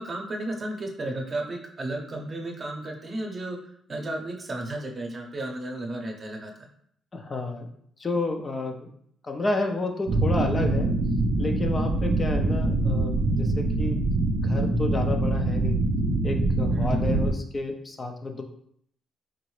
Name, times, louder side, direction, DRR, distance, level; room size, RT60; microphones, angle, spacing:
voice 1, 0.0-3.6 3.9-6.7 16.7-17.0, right 1 dB, 35° right, 1 dB, 0.8 m, -33 dB
voice 2, 7.1-7.7 8.0-8.9 9.2-10.9 11.4-14.0 14.4-15.8 16.2-18.4, left 2 dB, 30° left, 3 dB, 0.5 m, -30 dB
sound 1, 10.1-17.3, right 2 dB, 65° right, 0.5 m, -24 dB
3.8 x 2.6 x 3.1 m, 0.69 s
cardioid pair, 90°, 0 cm